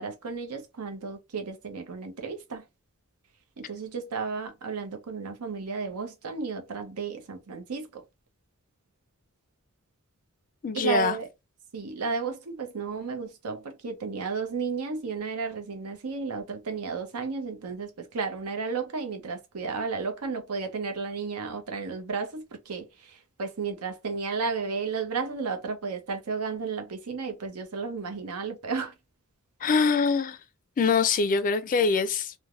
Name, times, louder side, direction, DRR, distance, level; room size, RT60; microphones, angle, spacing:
voice 1, 0.0-2.6 3.6-8.0 10.7-11.3 11.7-28.9, right 4 dB, 90° right, 0.7 m, -33 dB
voice 2, 10.6-11.2 29.6-30.4 30.8-32.3, left 4 dB, 40° left, 0.3 m, -24 dB
3.2 x 2.1 x 2.4 m
head